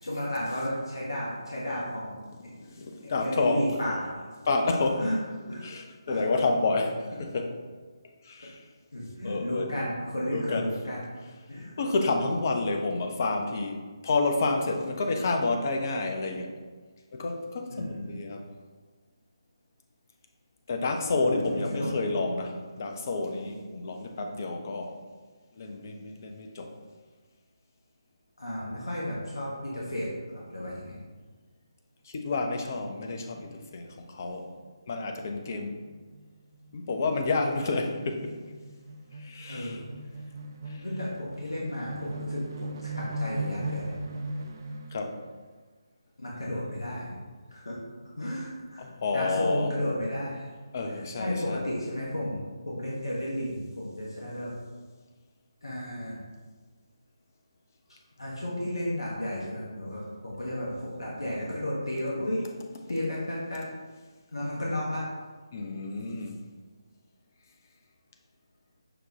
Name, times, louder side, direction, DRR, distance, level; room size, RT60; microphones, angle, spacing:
voice 1, 0.0-2.2 3.2-4.3 5.0-5.2 5.5-5.7 6.1-6.2 8.9-11.0 11.5-11.8 17.7-18.0 21.2-21.9 28.4-30.1 30.3-31.0 39.5-39.8 40.8-42.7 43.2-44.0 46.2-47.2 47.5-47.8 48.2-48.8 49.1-50.4 51.2-52.4 52.6-54.5 55.6-56.2 58.2-62.4 62.9-63.6 64.3-65.0, left 1 dB, 70° left, -5 dB, 0.9 m, -33 dB
voice 2, 2.3-3.8 4.4-5.1 5.6-7.6 8.2-8.7 9.2-9.7 10.3-10.8 11.8-16.6 17.1-18.5 20.7-25.0 25.5-26.8 32.0-34.5 34.9-35.8 36.7-38.4 39.1-39.8 40.7-40.9 44.9-45.2 48.8-49.8 50.7-51.6 62.8-62.9 65.5-66.4, left 3 dB, 35° left, 4 dB, 0.5 m, -30 dB
sound 1, 34.4-34.7 35.0-35.2 35.4-45.1, right 1 dB, 40° right, 0.4 m, -38 dB
5.9 x 2.2 x 3.8 m, 1.4 s
figure-of-eight pair, 150°, 3 cm